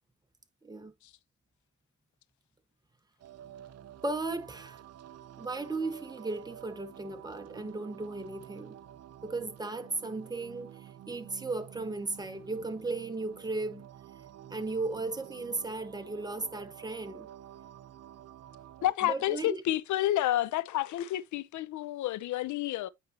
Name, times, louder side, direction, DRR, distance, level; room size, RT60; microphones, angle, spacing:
voice 1, 0.6-0.9 4.0-4.8 5.4-8.8 9.2-13.9 14.5-17.3 19.0-19.6, right 3 dB, 15° right, 1.3 m, -36 dB
sound 1, 3.2-18.9, right 11 dB, 55° right, 0.5 m, -50 dB
voice 2, 18.8-22.9, left 13 dB, 75° left, 0.6 m, -30 dB
8.8 x 5.2 x 2.8 m
cardioid pair, 90°, 30 cm